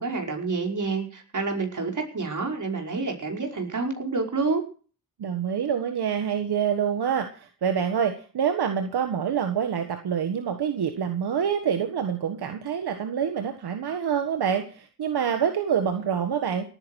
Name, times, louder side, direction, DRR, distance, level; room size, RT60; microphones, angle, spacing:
voice 1, 0.0-4.6, right 4 dB, 50° right, 2 dB, 5.3 m, -28 dB
voice 2, 5.2-16.6, right 8 dB, 85° right, 6 dB, 1.6 m, -26 dB
18.0 x 9.8 x 6.4 m, 0.40 s
cardioid pair, 65°, 38 cm